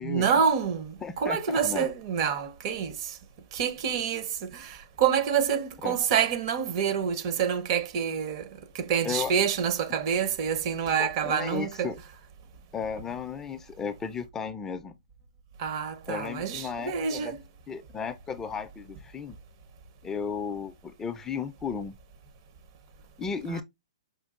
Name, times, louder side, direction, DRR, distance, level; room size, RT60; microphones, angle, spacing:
voice 1, 0.0-3.1 3.5-8.5 8.7-11.9 15.6-17.4 23.5-23.6, right 7 dB, 40° right, 0.7 m, -27 dB
voice 2, 1.0-1.9 5.8-6.0 9.0-9.3 11.0-12.0 12.7-14.9 16.1-17.3 17.7-19.4 20.0-21.9 23.2-23.6, left 6 dB, 15° left, 0.4 m, -34 dB
5.1 x 2.4 x 2.3 m
hypercardioid pair, 135°, 3 cm